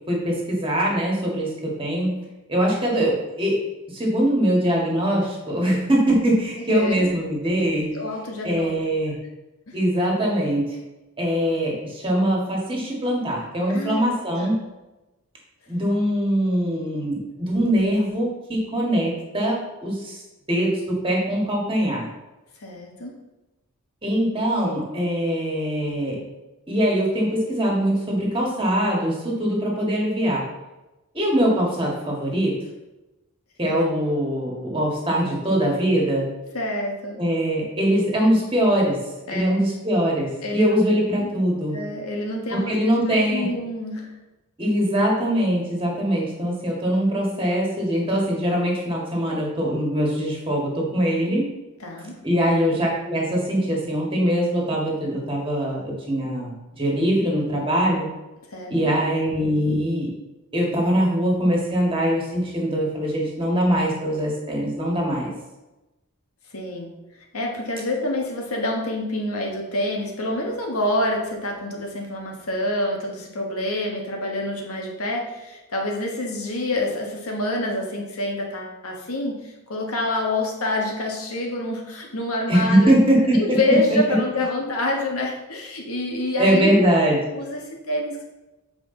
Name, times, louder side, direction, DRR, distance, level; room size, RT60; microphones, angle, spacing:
voice 1, 0.1-3.6 3.9-7.9 8.4-9.1 9.7-10.8 11.2-14.6 15.7-20.2 20.5-22.1 24.0-26.2 26.7-30.4 31.1-32.5 33.6-36.3 37.2-39.0 39.3-41.8 42.5-43.5 44.6-51.5 52.2-58.1 58.7-60.1 60.5-65.3 82.5-83.8 86.4-87.2, equal, 25° right, -2 dB, 1.7 m, -22 dB
voice 2, 6.7-7.1 7.9-8.8 9.7-9.8 13.7-14.5 22.6-23.1 33.6-33.8 36.5-37.2 39.3-39.5 40.4-40.7 41.2-41.3 41.7-42.8 43.1-44.1 51.8-52.1 58.5-58.9 66.5-66.9 67.3-82.9 83.3-86.8 87.3-87.6 87.9-88.2, left 1 dB, 75° left, 0 dB, 1.4 m, -27 dB
7.7 x 5.0 x 3.8 m, 1.0 s
head